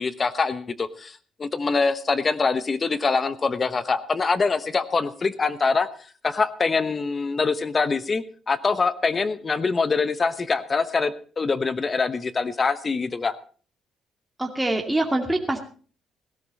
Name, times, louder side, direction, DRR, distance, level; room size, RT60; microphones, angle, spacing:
voice 1, 0.0-5.9 6.2-13.4, left 4 dB, 35° left, 14 dB, 1.0 m, -24 dB
voice 2, 14.4-15.6, right 1 dB, 10° right, 2 dB, 2.5 m, -24 dB
17.0 x 13.0 x 4.1 m, 0.41 s
cardioid pair, 90°, 0 cm